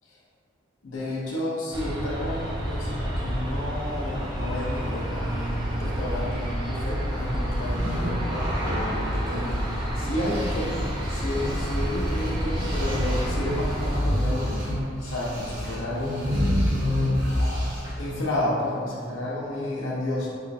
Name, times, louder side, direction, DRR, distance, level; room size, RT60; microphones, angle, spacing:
voice 1, 0.8-14.7 15.0-16.9 17.2-20.3, left 1 dB, 85° left, -5 dB, 0.7 m, -31 dB
Aircraft, 1.7-14.0, equal, 25° right, 0.4 m, -29 dB
sound 1, 7.5-9.9 10.2-18.1, equal, 50° right, 0.9 m, -29 dB
3.7 x 2.1 x 2.6 m, 2.2 s
head